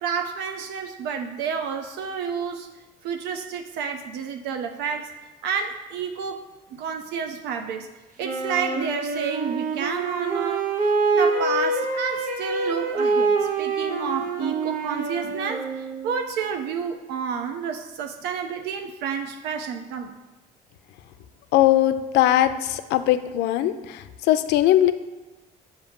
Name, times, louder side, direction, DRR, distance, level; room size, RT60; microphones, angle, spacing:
voice 1, 0.0-2.7 3.0-5.1 5.4-6.4 6.7-7.9 8.2-10.7 11.1-20.1, right 7 dB, 85° right, 5 dB, 0.5 m, -30 dB
Wind instrument woodwind instrument, 8.2-16.2, right 3 dB, 55° right, 0.8 m, -26 dB
voice 2, 21.5-24.9, left 13 dB, 85° left, 11 dB, 0.4 m, -20 dB
7.1 x 2.7 x 5.2 m, 1.1 s
cardioid pair, 110°, 17 cm